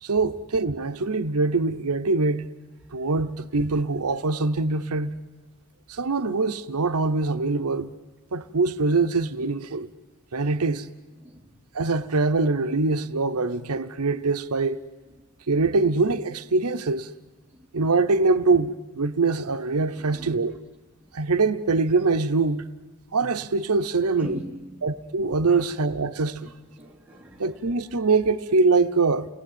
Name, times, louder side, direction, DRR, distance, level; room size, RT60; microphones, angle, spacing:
voice 1, 0.0-2.5 2.9-5.2 5.9-7.9 8.3-9.9 10.3-10.9 11.7-14.8 15.5-17.1 17.7-20.5 21.1-22.7 23.1-24.4 24.8-26.5 27.4-29.3, right 3 dB, 90° right, 0.9 m, -23 dB
voice 2, 19.9-20.5 24.2-24.9 25.5-25.7 26.4-26.5 26.8-27.7, equal, 5° right, 2.9 m, -42 dB
30.0 x 19.0 x 9.2 m
head